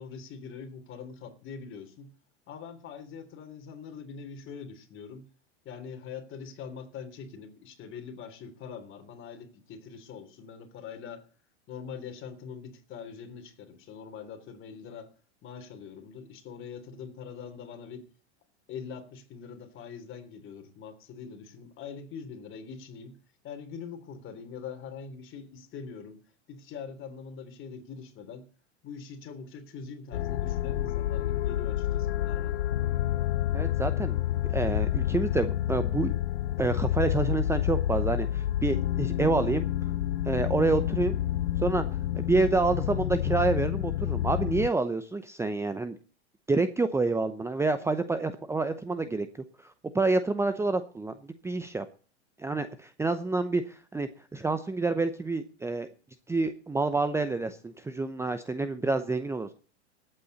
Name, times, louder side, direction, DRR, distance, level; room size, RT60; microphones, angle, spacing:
voice 1, 0.0-2.1 2.5-5.3 5.6-11.3 11.7-15.1 15.4-18.0 18.7-23.2 23.4-26.2 26.5-28.5 28.8-32.6, left 6 dB, 35° left, 3.4 m, -43 dB
sound 1, 30.1-44.7, left 12 dB, 80° left, 0.7 m, -29 dB
voice 2, 33.5-34.2 34.5-36.1 36.6-39.7 40.3-41.2 41.6-41.8 42.1-46.0 46.5-49.3 49.6-51.1 51.4-51.9 52.4-55.9 56.3-59.5, right 3 dB, 10° right, 0.7 m, -28 dB
20.0 x 8.9 x 4.1 m
hypercardioid pair, 110°, 33 cm